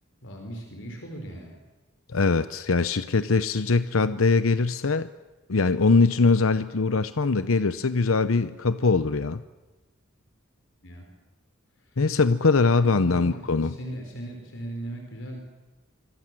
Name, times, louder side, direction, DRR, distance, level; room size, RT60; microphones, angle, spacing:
voice 1, 0.2-1.5 10.8-11.1 12.7-15.4, right 1 dB, 65° left, 3 dB, 4.6 m, -38 dB
voice 2, 2.1-5.1 5.5-9.4 12.0-13.7, left 4 dB, 85° left, 13 dB, 0.8 m, -22 dB
25.5 x 25.0 x 7.6 m, 1.2 s
head